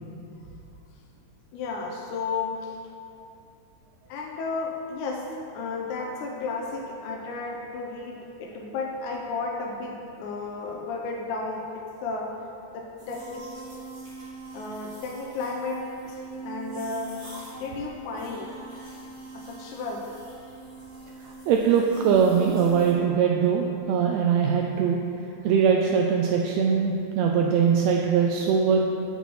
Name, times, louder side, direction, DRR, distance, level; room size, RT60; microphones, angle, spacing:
voice 1, 1.5-2.8 4.1-12.4 12.7-13.5 14.5-18.5 19.3-20.1, left 3 dB, 85° left, 0 dB, 2.1 m, -33 dB
sound 1, 13.0-22.9, right 2 dB, 40° right, 0.8 m, -42 dB
voice 2, 21.2-25.0 25.4-28.8, right 6 dB, 85° right, 1 dB, 1.6 m, -22 dB
6.1 x 5.9 x 7.1 m, 2.7 s
omnidirectional pair, 3.6 m